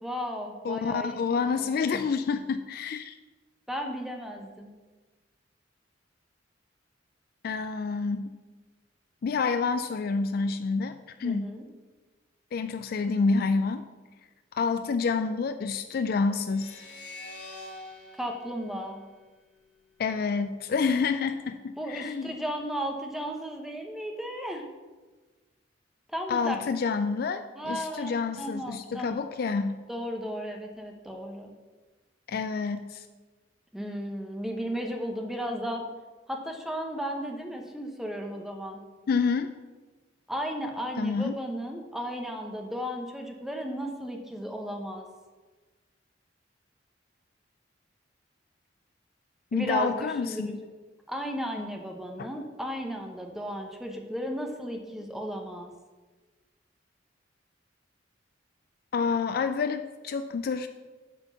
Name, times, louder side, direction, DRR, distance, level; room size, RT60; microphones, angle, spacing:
voice 1, 0.0-1.8 3.7-4.7 11.2-11.6 18.2-19.0 21.8-24.7 26.1-26.6 27.6-29.3 29.9-31.5 33.7-35.9 36.3-38.8 40.3-45.1 49.5-50.6 51.1-55.7, equal, ahead, 2 dB, 0.8 m, -35 dB
voice 2, 0.6-3.2 7.4-8.3 9.2-11.5 12.5-13.8 14.6-16.8 20.0-22.4 26.3-29.8 32.3-33.1 39.1-39.5 41.0-41.3 49.5-50.6 52.2-52.3 58.9-60.7, left 5 dB, 55° left, 9 dB, 0.3 m, -28 dB
sound 1, 16.5-19.8, left 2 dB, 70° left, 1.7 m, -46 dB
8.1 x 4.4 x 6.9 m, 1.3 s
head